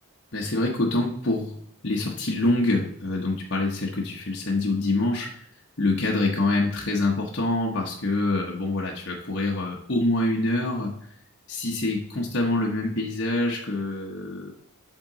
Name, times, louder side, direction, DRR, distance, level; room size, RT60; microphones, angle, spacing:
voice 1, 0.3-5.4 5.8-10.9 11.5-14.5, left 2 dB, 50° left, -2 dB, 0.9 m, -26 dB
7.8 x 3.7 x 3.9 m, 0.67 s
head